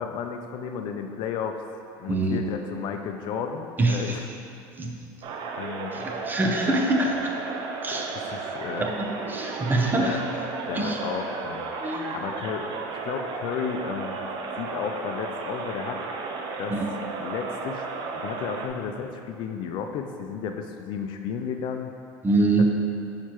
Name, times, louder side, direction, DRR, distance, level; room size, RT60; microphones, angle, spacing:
voice 1, 0.0-1.6 2.0-4.2 5.6-5.9 7.9-8.9 9.9-10.2 10.7-11.7 12.1-14.1 14.6-16.0 16.6-16.8 17.2-17.9 18.1-21.9 22.6-22.7, left 7 dB, 60° left, 5 dB, 0.5 m, -33 dB
voice 2, 2.1-2.4 3.8-4.2 4.8-5.1 5.9-7.3 7.8-8.1 8.8-10.2 10.7-11.0 11.8-12.2 16.7-16.9 22.2-22.6, right 2 dB, 20° right, 1 dB, 0.8 m, -25 dB
sound 1, 5.2-18.7, right 4 dB, 55° right, 0.6 m, -34 dB
6.5 x 5.7 x 3.1 m, 2.5 s
supercardioid pair, 110°, 9 cm